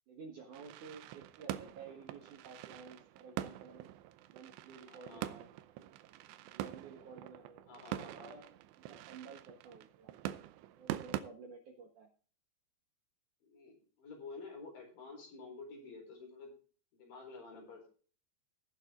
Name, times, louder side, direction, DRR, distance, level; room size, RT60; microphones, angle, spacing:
voice 1, 0.1-3.9 4.3-5.5 6.5-8.5 8.8-10.1 10.7-12.1, right 5 dB, 60° right, 2 dB, 2.2 m, -52 dB
sound 1, 0.5-11.2, right 13 dB, 80° right, 2.8 m, -45 dB
voice 2, 4.9-5.4 7.7-8.3 13.4-16.5 16.9-17.9, left 4 dB, 50° left, 1 dB, 5.8 m, -50 dB
18.0 x 7.4 x 3.8 m, 0.40 s
omnidirectional pair, 5.2 m